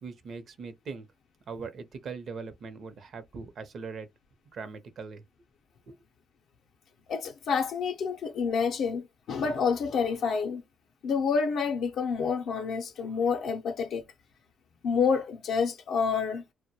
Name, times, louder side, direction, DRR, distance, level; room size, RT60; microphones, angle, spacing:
voice 1, 0.0-1.1 1.5-4.1 4.5-5.2 5.9-6.0, right 4 dB, 55° right, 0.6 m, -40 dB
voice 2, 7.1-10.6 11.0-14.0 14.8-16.4, left 6 dB, 75° left, 0.4 m, -28 dB
2.2 x 2.1 x 2.7 m
cardioid pair, 90°, 0 cm